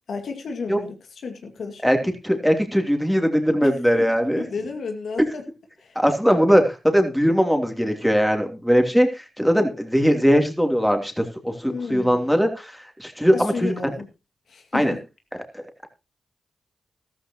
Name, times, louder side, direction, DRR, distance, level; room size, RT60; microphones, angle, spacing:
voice 1, 0.1-1.0 1.2-2.1 3.6-3.7 4.4-5.4 5.8-6.0 11.7-12.4 13.3-14.1 14.5-15.0, left 4 dB, 75° left, 4 dB, 2.2 m, -32 dB
voice 2, 2.2-4.4 5.2-5.3 5.9-13.9 14.7-15.0 15.5-15.9, equal, ahead, 4 dB, 3.0 m, -20 dB
14.0 x 13.0 x 3.0 m, 0.27 s
cardioid pair, 50°, 0 cm